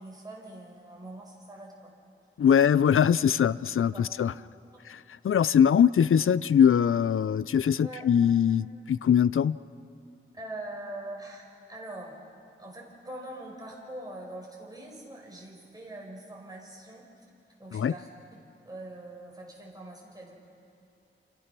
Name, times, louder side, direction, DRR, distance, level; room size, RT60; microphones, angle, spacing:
voice 1, 0.0-1.9 2.5-2.6 3.9-4.1 7.8-8.1 10.3-12.2 12.6-17.3 17.6-18.4 18.7-20.3, right 1 dB, 20° right, -2 dB, 5.6 m, -43 dB
voice 2, 2.4-4.3 4.8-9.6 17.7-17.9, left 8 dB, 75° left, 17 dB, 0.5 m, -22 dB
29.0 x 28.0 x 6.1 m, 2.8 s
wide cardioid pair, 120°, 21 cm